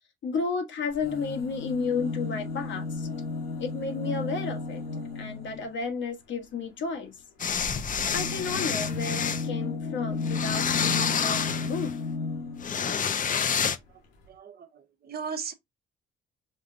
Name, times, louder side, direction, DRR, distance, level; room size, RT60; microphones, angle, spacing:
voice 1, 0.2-3.1 3.6-4.8 5.1-7.1 8.1-12.0, left 4 dB, 70° left, 1.3 m, -32 dB
sound 1, 0.9-5.8 7.4-12.9 13.8-13.9 14.1-14.2, left 3 dB, 85° left, 1.9 m, -34 dB
sound 2, 7.4-9.5 10.2-12.0 12.6-13.8, left 7 dB, 40° left, 0.6 m, -28 dB
voice 2, 14.3-15.5, right 6 dB, 50° right, 1.0 m, -37 dB
5.2 x 2.3 x 3.7 m
cardioid pair, 90°, 20 cm